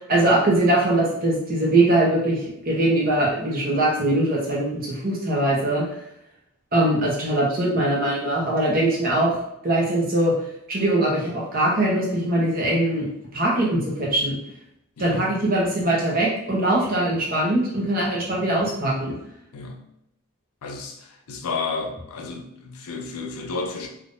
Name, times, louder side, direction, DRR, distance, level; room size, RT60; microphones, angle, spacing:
voice 1, 0.1-2.4 2.6-5.8 6.7-10.3 10.7-13.1 13.3-14.4 15.0-19.2, right 1 dB, 40° right, -4 dB, 0.9 m, -21 dB
voice 2, 15.0-15.3 19.5-19.8 20.6-23.9, left 4 dB, 85° left, 4 dB, 0.5 m, -32 dB
3.6 x 2.7 x 2.6 m, 0.79 s
head